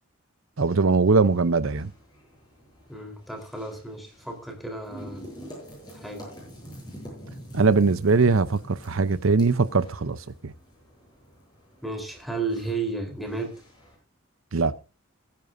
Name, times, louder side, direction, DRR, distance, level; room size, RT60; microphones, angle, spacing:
voice 1, 0.6-1.9 7.5-10.5 14.5-14.8, right 4 dB, 70° right, 0.7 m, -21 dB
sound 1, 0.7-14.0, equal, 20° left, 8.0 m, -46 dB
voice 2, 2.9-5.2 5.9-6.2 11.8-13.5, right 3 dB, ahead, 3.8 m, -33 dB
22.0 x 10.0 x 2.7 m
head